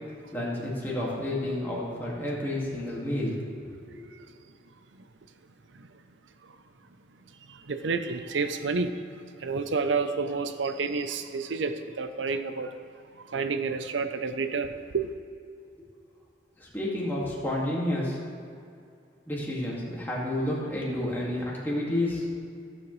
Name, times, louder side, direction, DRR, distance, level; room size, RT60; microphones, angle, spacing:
voice 1, 0.3-3.4 3.9-4.0 16.6-18.2 19.3-22.3, left 1 dB, 10° left, -5 dB, 2.0 m, -30 dB
voice 2, 7.7-8.9 9.4-12.7 13.3-15.1, right 4 dB, 85° right, 9 dB, 0.6 m, -29 dB
15.5 x 7.5 x 3.2 m, 2.4 s
head